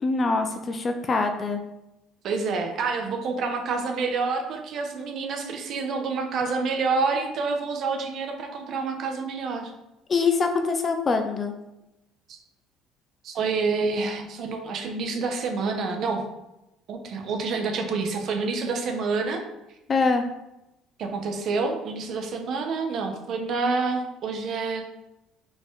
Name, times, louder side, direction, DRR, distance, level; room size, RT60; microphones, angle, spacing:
voice 1, 0.0-1.6 10.1-11.5 19.9-20.2, left 4 dB, 30° left, 6 dB, 0.6 m, -24 dB
voice 2, 2.2-9.7 12.3-12.4 13.2-16.2 16.9-19.4 21.0-24.8, right 4 dB, 50° right, 4 dB, 1.2 m, -28 dB
5.2 x 4.5 x 4.7 m, 0.91 s
cardioid pair, 140°, 0 cm